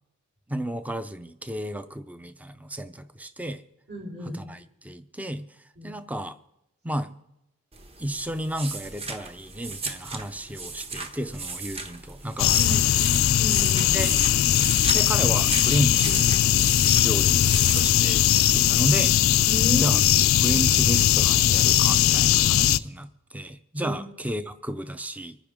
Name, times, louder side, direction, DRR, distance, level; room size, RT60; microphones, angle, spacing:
voice 1, 0.5-3.6 4.3-5.5 5.8-6.4 6.8-7.1 8.0-12.9 13.9-14.2 14.9-16.3 17.0-17.5 17.7-19.2 19.8-20.0 20.4-25.4, right 1 dB, 5° right, 12 dB, 0.5 m, -32 dB
voice 2, 3.9-4.4 5.8-5.9 12.5-12.9 13.4-14.0 19.4-20.0 23.8-24.0, left 1 dB, 55° right, -10 dB, 5.2 m, -32 dB
sound 1, 7.7-18.7, right 4 dB, 25° right, 1.1 m, -36 dB
sound 2, 12.4-22.8, left 11 dB, 65° left, 0.4 m, -20 dB
25.5 x 10.0 x 3.7 m, 0.88 s
head